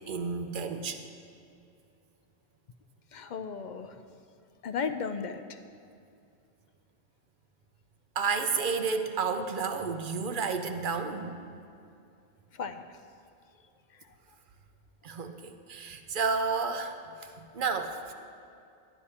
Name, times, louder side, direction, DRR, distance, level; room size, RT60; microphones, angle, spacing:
voice 1, 0.1-1.1 8.2-11.4 15.0-17.0 17.2-18.1, right 5 dB, 55° right, 7 dB, 0.8 m, -31 dB
voice 2, 3.1-4.0 4.6-5.6 12.5-12.8, left 5 dB, 60° left, 10 dB, 0.6 m, -35 dB
11.5 x 10.0 x 4.3 m, 2.5 s
omnidirectional pair, 1.1 m